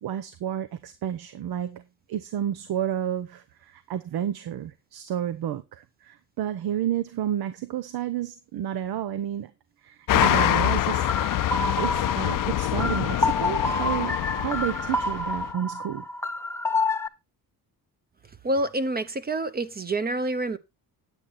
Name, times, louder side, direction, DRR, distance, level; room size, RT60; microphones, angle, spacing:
voice 1, 0.0-1.8 2.1-9.5 9.8-11.1 11.8-16.1, right 10 dB, 85° right, 0.9 m, -31 dB
sound 1, 10.1-15.5, left 15 dB, 60° left, 0.5 m, -26 dB
sound 2, 10.2-17.1, left 2 dB, 10° left, 0.5 m, -28 dB
voice 2, 18.4-20.6, right 2 dB, 25° right, 0.7 m, -27 dB
9.2 x 8.6 x 4.1 m
cardioid pair, 140°, 37 cm